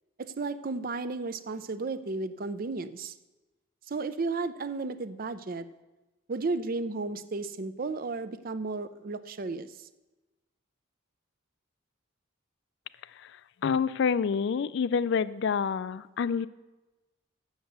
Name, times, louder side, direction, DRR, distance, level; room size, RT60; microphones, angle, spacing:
voice 1, 0.2-3.1 3.9-5.7 6.3-9.9, right 3 dB, 45° right, 13 dB, 0.5 m, -33 dB
voice 2, 13.6-16.5, left 6 dB, 60° left, 16 dB, 0.3 m, -27 dB
8.0 x 6.6 x 7.9 m, 1.1 s
head